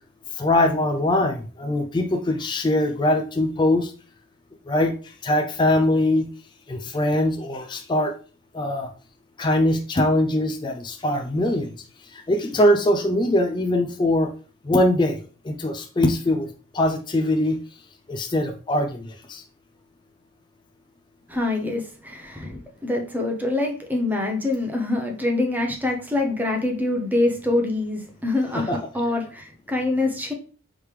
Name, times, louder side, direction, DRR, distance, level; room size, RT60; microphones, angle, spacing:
voice 1, 0.4-3.9 4.7-4.9 5.2-6.3 6.7-8.1 8.5-8.9 9.4-11.7 12.1-14.3 14.7-15.2 15.4-16.5 16.7-17.6 18.1-19.4 28.5-28.8, left 1 dB, 20° left, 5 dB, 0.3 m, -22 dB
voice 2, 21.3-30.3, left 2 dB, 10° right, 2 dB, 0.7 m, -25 dB
4.9 x 3.2 x 3.2 m, 0.38 s
head